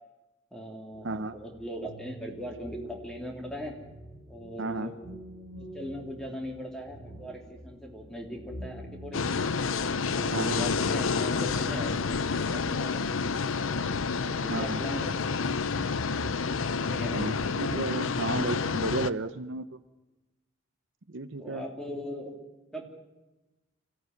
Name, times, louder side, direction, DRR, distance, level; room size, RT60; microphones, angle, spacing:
voice 1, 0.5-3.7 4.3-5.0 5.7-9.2 10.1-12.9 14.3-15.5 16.7-17.2 21.4-22.4 22.7-22.8, equal, 5° left, 1 dB, 3.1 m, -39 dB
sound 1, 0.9-18.1, right 1 dB, 30° left, 2.8 m, -47 dB
voice 2, 1.0-1.4 4.6-4.9 10.3-10.6 14.5-14.8 17.1-19.8 21.1-21.6, right 3 dB, 65° right, 10 dB, 0.8 m, -33 dB
sound 2, 9.1-19.1, left 5 dB, 80° left, 0.7 m, -29 dB
24.5 x 15.5 x 9.6 m, 1.1 s
head